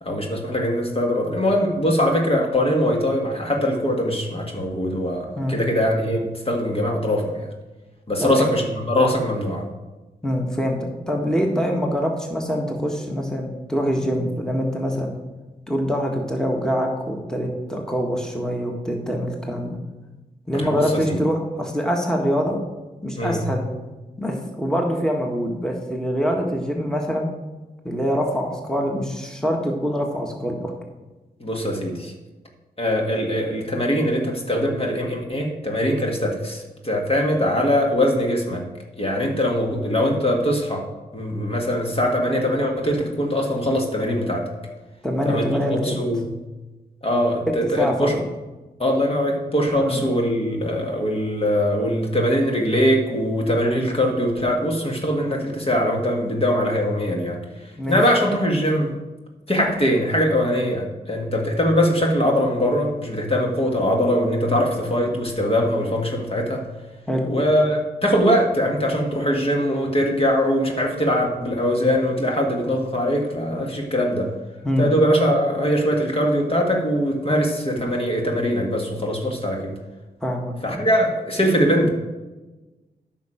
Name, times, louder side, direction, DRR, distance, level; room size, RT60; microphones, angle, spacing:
voice 1, 0.0-7.5 8.1-9.6 20.5-21.2 23.2-23.4 31.4-32.1 32.8-38.6 39.0-40.8 41.1-44.4 45.3-45.6 45.8-46.3 47.0-48.2 48.8-57.4 57.9-58.9 59.5-66.6 67.3-74.3 74.8-79.8 80.6-81.9, equal, 35° left, 0 dB, 1.7 m, -22 dB
voice 2, 10.2-15.1 15.7-19.8 20.5-22.6 23.0-23.6 24.2-27.3 27.8-30.7 45.0-46.0 47.5-48.1 49.7-50.0 57.8-58.0 67.1-67.3 74.6-74.9 80.2-80.8, equal, 5° left, 1 dB, 1.7 m, -24 dB
9.2 x 6.0 x 5.1 m, 1.1 s
cardioid pair, 50°, 17 cm